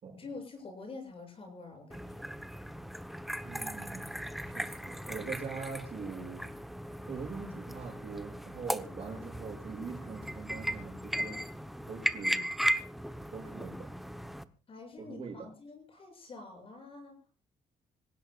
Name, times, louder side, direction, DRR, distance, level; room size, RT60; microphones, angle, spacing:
voice 1, 0.2-2.3 14.7-17.2, left 3 dB, 40° left, 4 dB, 7.6 m, -47 dB
sound 1, 1.9-14.4, equal, ahead, 0.9 m, -37 dB
voice 2, 3.4-4.1 4.4-6.4 7.1-11.4 11.9-12.5 13.3-13.9 15.0-15.5, right 5 dB, 40° right, 3 dB, 6.7 m, -42 dB
26.0 x 17.0 x 2.4 m, 0.34 s
cardioid pair, 145°, 15 cm